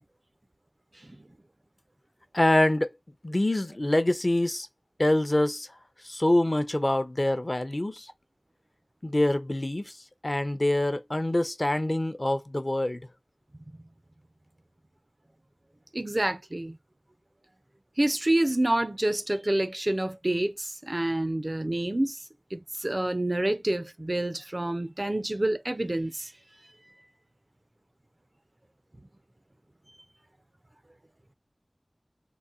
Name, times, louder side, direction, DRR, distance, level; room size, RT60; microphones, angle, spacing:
voice 1, 2.3-2.9 3.2-4.7 5.0-5.7 6.0-8.1 9.0-10.0 10.2-13.0, left 1 dB, 40° left, 0.5 m, -25 dB
voice 2, 15.9-16.8 18.0-22.2 22.5-26.3, right 1 dB, 40° right, 0.4 m, -28 dB
3.9 x 2.1 x 2.3 m
wide cardioid pair, 40°, 0 cm